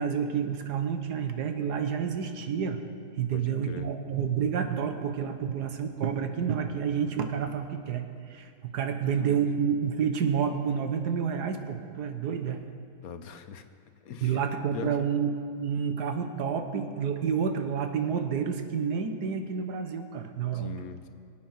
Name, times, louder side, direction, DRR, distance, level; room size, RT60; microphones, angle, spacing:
voice 1, 0.0-2.8 3.1-12.6 14.2-20.7, right 7 dB, 85° right, 7 dB, 1.6 m, -29 dB
voice 2, 3.3-3.9 9.0-9.4 13.0-13.7 14.0-14.4 14.7-14.9 20.5-21.1, left 7 dB, 65° left, 9 dB, 1.2 m, -41 dB
23.5 x 8.4 x 5.9 m, 2.2 s
omnidirectional pair, 1.7 m